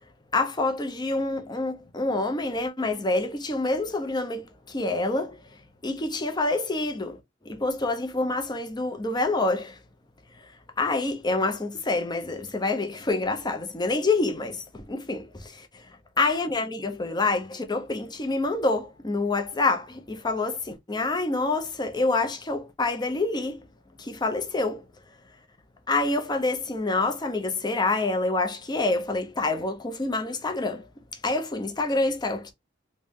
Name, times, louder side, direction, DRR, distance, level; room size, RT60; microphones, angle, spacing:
voice 1, 0.3-5.4 5.8-7.2 7.4-9.8 10.8-15.8 16.2-23.6 24.0-24.8 25.9-30.8 31.2-32.5, left 2 dB, 25° left, 0.6 m, -27 dB
3.2 x 2.6 x 3.6 m
head